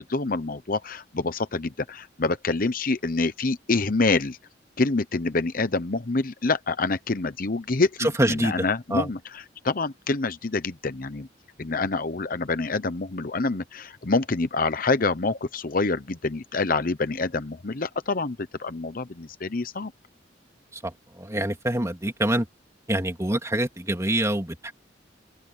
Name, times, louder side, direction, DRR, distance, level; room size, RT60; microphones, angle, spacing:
voice 1, 0.0-4.4 4.8-11.3 11.6-19.9, left 3 dB, 50° left, 0.9 m, -26 dB
voice 2, 8.2-8.5 8.9-9.1 21.2-22.5 22.9-24.7, right 1 dB, 15° right, 2.9 m, -25 dB
open air
head